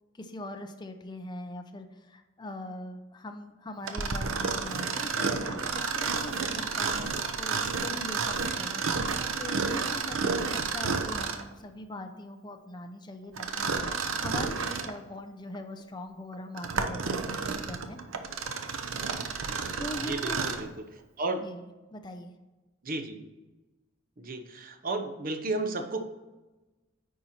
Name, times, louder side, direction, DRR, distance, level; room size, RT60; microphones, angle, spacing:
voice 1, 0.1-8.8 9.4-13.7 14.2-18.0 19.8-20.5 21.4-22.3, left 1 dB, 20° left, 5 dB, 0.6 m, -41 dB
Mechanisms, 3.8-11.5 13.4-15.0 15.5-15.6 16.3-20.7, right 5 dB, 85° right, 0.7 m, -31 dB
voice 2, 20.0-20.9 21.2-21.4 22.8-23.2 24.2-26.0, right 2 dB, 45° right, 7 dB, 0.8 m, -33 dB
9.5 x 4.3 x 4.3 m, 1.1 s
head